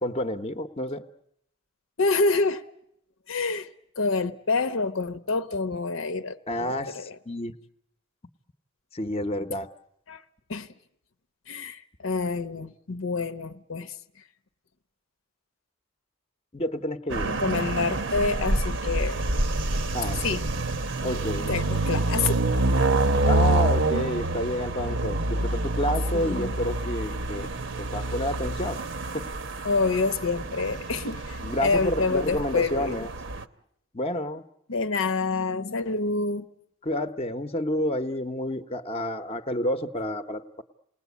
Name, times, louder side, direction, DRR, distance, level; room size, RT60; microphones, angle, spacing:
voice 1, 0.0-1.0 6.5-7.5 8.9-9.7 16.5-17.3 19.9-20.4 21.0-21.5 23.3-27.7 27.9-28.8 29.1-29.3 31.4-33.1 33.9-34.4 36.8-40.6, left 1 dB, 30° left, 0.9 m, -29 dB
voice 2, 2.0-2.6 3.3-3.7 4.0-7.2 10.1-10.2 10.5-10.7 11.5-13.9 17.3-19.2 20.2-20.4 21.5-22.3 26.1-26.5 29.6-33.1 34.7-36.5, left 3 dB, 80° left, 0.9 m, -27 dB
sound 1, 17.1-33.4, right 2 dB, 65° right, 0.9 m, -27 dB
28.5 x 19.5 x 8.3 m
head